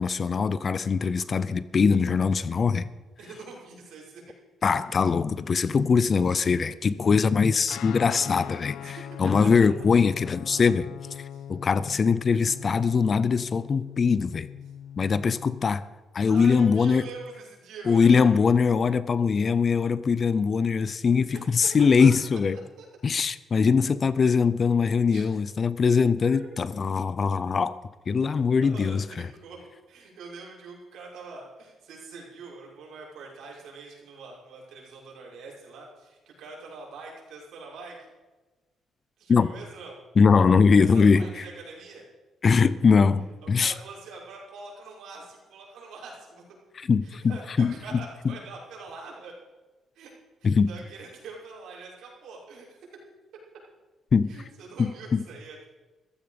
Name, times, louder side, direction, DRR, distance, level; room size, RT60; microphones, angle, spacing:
voice 1, 0.0-2.9 4.6-10.9 11.5-14.5 15.0-15.9 16.1-17.0 17.9-22.6 23.0-27.8 28.1-29.1 39.3-39.5 40.2-41.4 42.4-43.7 46.8-48.3 50.4-50.7 54.1-54.3 54.8-55.2, left 5 dB, 35° left, 0.6 m, -22 dB
voice 2, 3.2-4.2 8.8-9.0 11.3-11.5 16.3-18.4 21.3-21.5 22.0-22.1 22.5-22.9 25.1-25.2 26.2-26.5 28.1-28.3 28.6-29.6 29.9-38.0 39.2-40.0 40.7-42.1 43.4-46.4 47.0-49.3 49.9-50.1 50.4-52.8 54.3-55.7, right 4 dB, 80° right, 6.1 m, -44 dB
Guitar, 7.7-15.7, left 9 dB, 85° left, 0.5 m, -41 dB
15.0 x 14.0 x 5.2 m
cardioid pair, 140°, 0 cm